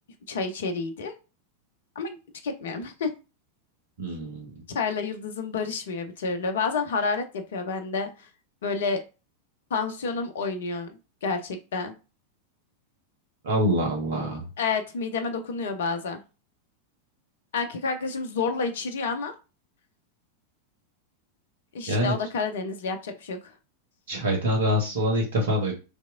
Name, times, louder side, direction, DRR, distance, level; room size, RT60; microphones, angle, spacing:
voice 1, 0.3-1.2 2.0-2.2 2.4-3.1 4.7-8.3 8.6-9.0 9.7-10.9 11.2-11.9 14.2-14.3 14.6-16.2 17.5-19.3 21.7-23.4, left 4 dB, 60° left, 7 dB, 0.5 m, -29 dB
voice 2, 4.0-4.5 13.4-14.4 21.9-22.1 24.1-25.7, equal, 60° right, 0 dB, 1.3 m, -25 dB
3.3 x 2.9 x 2.4 m, 0.31 s
figure-of-eight pair, 90°, 0 cm